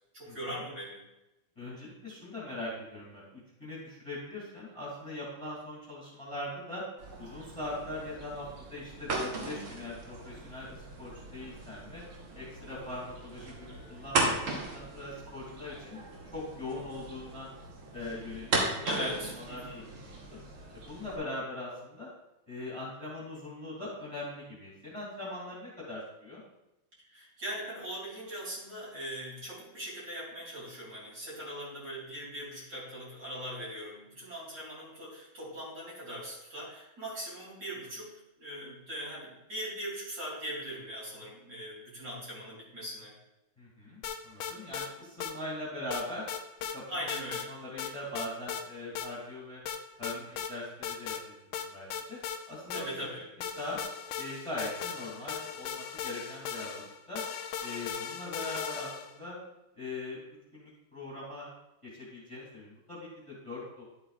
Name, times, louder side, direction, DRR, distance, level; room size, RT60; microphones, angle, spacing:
voice 1, 0.1-1.0 18.8-19.9 27.0-43.1 46.9-47.5 52.7-53.3, equal, 50° right, -6 dB, 4.0 m, -40 dB
voice 2, 1.6-6.8 7.2-12.0 12.3-17.5 17.9-18.6 18.9-19.1 19.5-20.4 20.9-22.1 22.5-26.4 43.6-46.2 46.7-46.8 47.5-49.6 50.0-52.2 52.5-52.9 53.6-53.8 54.1-57.2 57.6-59.4 59.7-60.2 60.5-61.5 61.8-63.8, left 2 dB, 15° left, -6 dB, 2.6 m, -41 dB
sound 1, 7.0-21.2, right 3 dB, 80° right, 2.2 m, -37 dB
Lead Synth A, 44.0-44.9 45.2-45.3 45.9-46.8 47.1-47.5 47.8-48.6 49.0-49.1 49.7-50.5 50.8-51.2 51.5-53.1 53.4-59.2, left 8 dB, 80° left, 1.4 m, -38 dB
11.0 x 7.9 x 2.5 m, 0.93 s
omnidirectional pair, 2.2 m